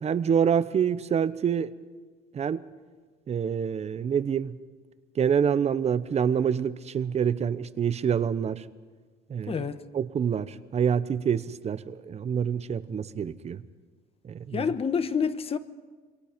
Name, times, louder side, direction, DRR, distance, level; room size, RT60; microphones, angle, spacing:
voice 1, 0.0-1.7 2.3-2.6 3.3-4.6 5.2-8.6 9.3-9.6 9.9-13.6 14.2-14.7, right 7 dB, 40° right, 0.9 m, -26 dB
voice 2, 9.5-9.8 14.5-15.6, left 6 dB, 35° left, 1.2 m, -27 dB
27.0 x 22.5 x 5.2 m
cardioid pair, 110°, 17 cm